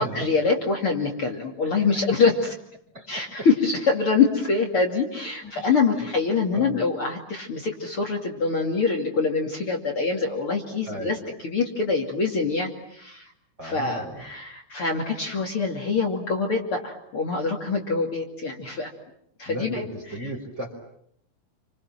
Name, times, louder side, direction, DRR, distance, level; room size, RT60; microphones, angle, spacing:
voice 1, 0.0-2.5 3.1-11.2 11.4-13.3 13.6-18.9 19.4-19.8 20.2-20.3, left 4 dB, 40° left, 1 dB, 3.2 m, -25 dB
voice 2, 2.9-3.5 5.4-5.8 6.5-6.8 10.9-11.2 13.6-14.3 19.5-20.7, right 1 dB, 20° right, 2 dB, 5.5 m, -36 dB
30.0 x 26.0 x 7.5 m, 0.69 s
omnidirectional pair, 3.9 m